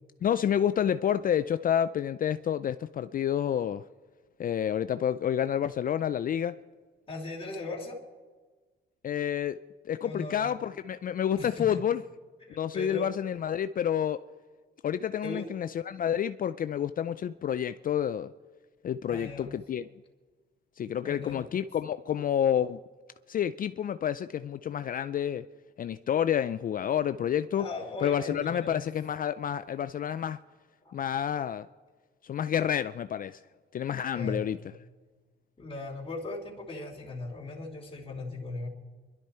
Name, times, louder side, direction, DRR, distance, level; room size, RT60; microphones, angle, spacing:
voice 1, 0.2-3.8 4.4-6.5 9.0-9.6 9.9-12.0 12.5-14.2 14.8-18.3 18.8-19.8 20.8-22.8 23.3-25.5 25.8-27.7 28.0-30.4 30.9-31.7 32.2-33.4 33.7-34.6, left 9 dB, 45° left, 12 dB, 0.4 m, -29 dB
voice 2, 7.1-8.0 10.0-10.6 11.4-11.8 12.4-13.1 15.2-15.5 19.1-19.6 21.0-21.4 27.6-28.9 30.8-30.9 34.1-34.5 35.6-38.7, left 2 dB, 25° left, -5 dB, 3.0 m, -38 dB
24.5 x 12.0 x 4.4 m, 1.4 s
cardioid pair, 90°, 20 cm